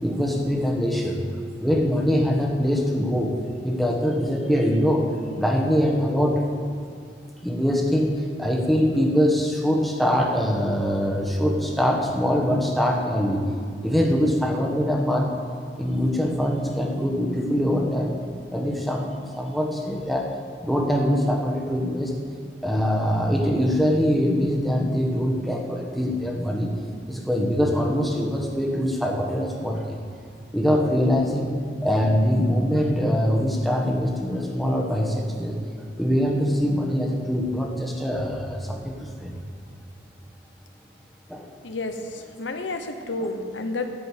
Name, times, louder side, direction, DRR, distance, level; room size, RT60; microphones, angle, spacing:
voice 1, 0.0-1.2 1.6-3.4 3.6-6.4 7.4-13.5 13.8-15.3 15.8-18.1 18.5-20.3 20.6-22.1 22.6-26.7 27.1-30.0 30.5-31.5 31.8-39.4 41.3-41.4 43.2-43.3, equal, ahead, 0 dB, 1.3 m, -23 dB
voice 2, 41.6-41.9 42.4-43.9, left 2 dB, 85° left, 6 dB, 1.0 m, -30 dB
13.5 x 5.1 x 8.4 m, 2.3 s
head